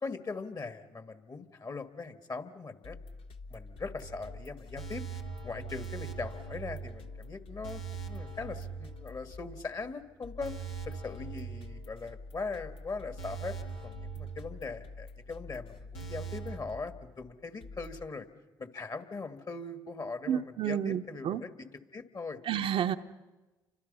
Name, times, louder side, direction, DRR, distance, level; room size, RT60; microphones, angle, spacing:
voice 1, 0.0-3.0 3.5-5.0 5.4-10.5 10.9-13.6 13.8-18.3 18.6-22.4, left 4 dB, 40° left, 9 dB, 2.1 m, -40 dB
sound 1, 2.8-18.1, left 3 dB, 65° left, 1.3 m, -48 dB
sound 2, 4.0-9.6 9.9-10.0 10.4-12.3 12.6-12.7 13.2-15.1 15.4-15.5 15.9-16.6, right 7 dB, 85° left, 1.7 m, -42 dB
voice 2, 20.3-21.4 22.5-23.0, right 9 dB, 65° right, 6 dB, 0.9 m, -30 dB
30.0 x 25.0 x 5.6 m, 1.2 s
hypercardioid pair, 55°, 10 cm